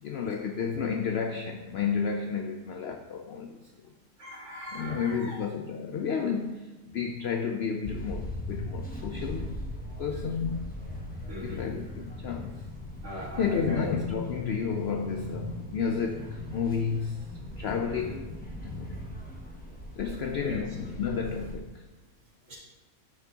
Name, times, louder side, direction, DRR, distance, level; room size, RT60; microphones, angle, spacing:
voice 1, 0.0-3.6 4.7-9.6 10.0-10.7 11.4-12.6 13.1-18.3 18.6-19.0 20.0-21.8, left 6 dB, 75° left, 5 dB, 0.6 m, -31 dB
voice 2, 4.2-5.4 11.3-11.6 13.0-13.9 17.9-18.2 20.4-20.6 22.5-22.6, left 1 dB, 50° right, -6 dB, 2.4 m, -39 dB
sound 1, 7.8-21.6, left 1 dB, 10° left, 0.8 m, -39 dB
10.5 x 6.0 x 2.8 m, 1.1 s
omnidirectional pair, 1.6 m